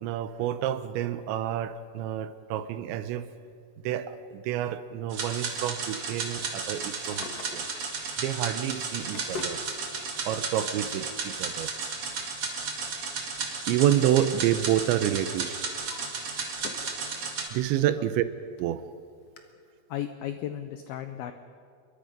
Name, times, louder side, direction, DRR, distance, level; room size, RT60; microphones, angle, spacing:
voice 1, 0.0-3.3 3.9-7.6 8.2-9.6 10.3-11.7 13.7-15.6 17.5-18.2 18.6-18.8, right 11 dB, 80° right, 12 dB, 2.9 m, -28 dB
sound 1, 5.1-17.5, right 4 dB, 45° right, 2.4 m, -34 dB
Drawer open or close, 6.8-8.0 8.7-9.6 10.7-10.8 12.6-14.1 14.4-14.8 15.3-17.0 17.4-17.5 18.2-18.3 18.6-18.7 19.4-19.5, left 4 dB, 65° left, 1.5 m, -44 dB
voice 2, 19.9-21.3, left 11 dB, 85° left, 8 dB, 2.2 m, -35 dB
27.5 x 23.0 x 5.3 m, 2.3 s
omnidirectional pair, 5.4 m